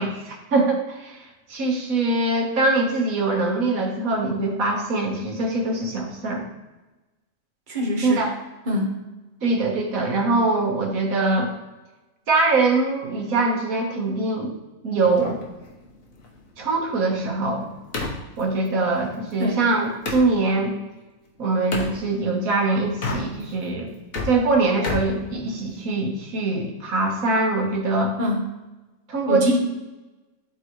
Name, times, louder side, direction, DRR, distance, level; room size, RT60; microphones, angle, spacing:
voice 1, 0.0-6.5 8.0-8.4 9.4-11.5 12.3-14.5 14.8-15.4 16.6-17.7 18.4-20.8 21.4-23.9 24.2-28.1 29.1-29.6, right 3 dB, 85° right, 0 dB, 1.8 m, -23 dB
voice 2, 7.7-8.3 8.7-9.0 19.4-19.6 28.2-28.5 29.3-29.6, left 1 dB, 35° right, -1 dB, 1.4 m, -24 dB
sound 1, 15.0-20.3 21.7-22.0 22.9-23.6 23.9-25.9, left 3 dB, 80° left, 1.6 m, -33 dB
12.0 x 4.0 x 3.1 m, 1.1 s
omnidirectional pair, 1.4 m